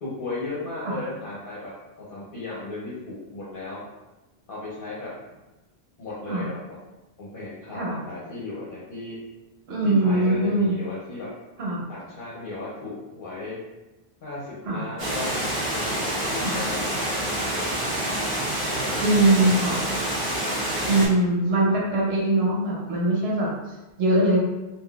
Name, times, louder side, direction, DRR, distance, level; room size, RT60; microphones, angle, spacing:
voice 1, 0.0-1.7 2.0-3.8 4.5-5.4 6.0-6.8 7.2-9.2 9.8-11.3 11.9-13.6 14.2-15.3 15.6-18.0 18.7-20.0, left 2 dB, 60° left, -8 dB, 0.9 m, -36 dB
voice 2, 9.7-10.7 11.6-11.8 14.6-14.9 16.4-16.6 19.0-19.8 20.8-24.4, right 1 dB, 80° right, -4 dB, 1.0 m, -22 dB
Water, 15.0-21.1, right 1 dB, 35° right, 1.1 m, -27 dB
3.5 x 2.4 x 2.3 m, 1.0 s
omnidirectional pair, 1.0 m